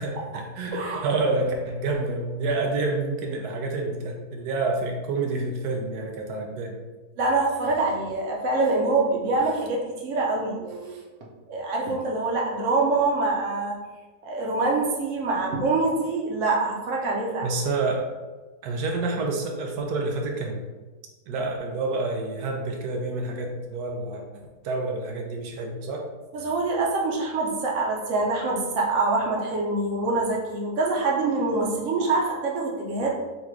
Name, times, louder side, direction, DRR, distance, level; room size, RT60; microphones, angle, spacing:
voice 1, 0.0-6.8 17.4-18.1 18.6-20.6 21.3-24.2 24.6-26.1, right 3 dB, 90° right, 1 dB, 1.2 m, -28 dB
voice 2, 0.7-1.1 7.2-11.0 11.5-13.8 14.2-17.5 26.3-33.2, right 3 dB, 60° right, -1 dB, 1.1 m, -25 dB
4.1 x 2.4 x 4.5 m, 1.2 s
omnidirectional pair, 1.6 m